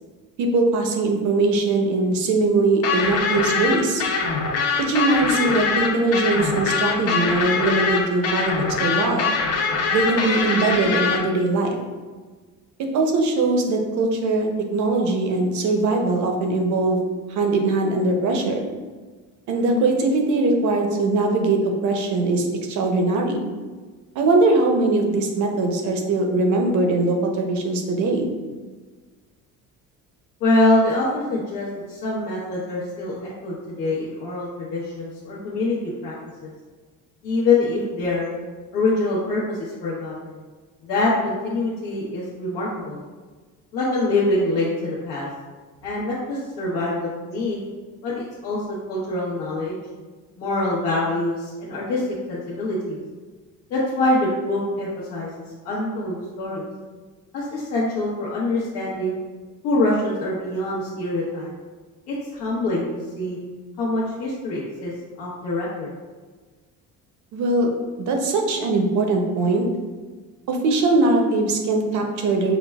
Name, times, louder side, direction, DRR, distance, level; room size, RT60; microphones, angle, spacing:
voice 1, 0.4-4.0 4.8-9.3 9.9-11.8 12.9-17.0 17.3-18.7 19.5-23.4 24.1-28.3 67.3-67.7 68.0-69.7 70.5-72.6, right 2 dB, 55° right, 3 dB, 0.7 m, -21 dB
sound 1, 2.8-11.2, left 5 dB, 45° left, 0.6 m, -23 dB
voice 2, 30.4-36.1 36.4-36.5 37.2-38.3 38.7-40.4 40.8-43.0 43.7-45.3 45.8-47.6 48.0-49.8 50.4-52.0 52.3-53.0 53.7-55.3 55.6-56.6 57.3-59.2 59.6-61.5 62.1-62.9 63.2-63.4 63.8-64.9 65.2-65.9, left 2 dB, 80° left, -8 dB, 1.0 m, -24 dB
5.8 x 2.1 x 2.3 m, 1.4 s
cardioid pair, 125°, 35 cm